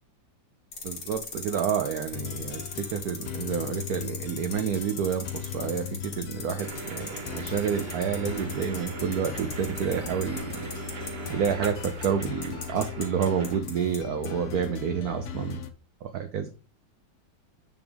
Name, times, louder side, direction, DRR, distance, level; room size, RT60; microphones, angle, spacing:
sound 1, 0.7-14.0 14.2-14.3, left 4 dB, 75° left, 2.7 m, -38 dB
voice 1, 0.8-15.6 16.0-16.5, right 8 dB, 60° right, 7 dB, 1.2 m, -29 dB
sound 2, 2.1-15.7, left 9 dB, 55° left, 0.8 m, -38 dB
sound 3, 6.6-13.6, right 6 dB, 40° right, 1.0 m, -40 dB
9.0 x 5.4 x 3.5 m, 0.35 s
omnidirectional pair, 2.0 m